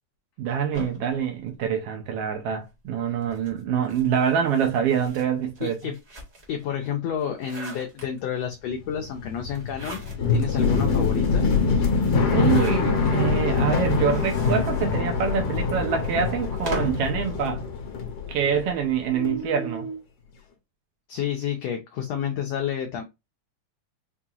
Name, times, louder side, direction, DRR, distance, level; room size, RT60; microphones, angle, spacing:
voice 1, 0.4-5.8 12.3-17.6 18.3-19.9, right 7 dB, 80° right, 1.3 m, -25 dB
sound 1, 0.7-2.3 3.2-6.6 7.1-8.5 9.5-10.5 10.9-11.0 11.3-11.4 12.2-13.2 13.9-17.1, right 1 dB, 55° right, 0.4 m, -40 dB
voice 2, 5.6-6.0 6.5-10.0 10.3-11.5 21.1-23.0, left 8 dB, 75° left, 1.5 m, -29 dB
sound 2, 8.8-18.9 19.1-20.0, left 4 dB, 60° left, 1.7 m, -24 dB
5.5 x 2.8 x 2.4 m
omnidirectional pair, 3.6 m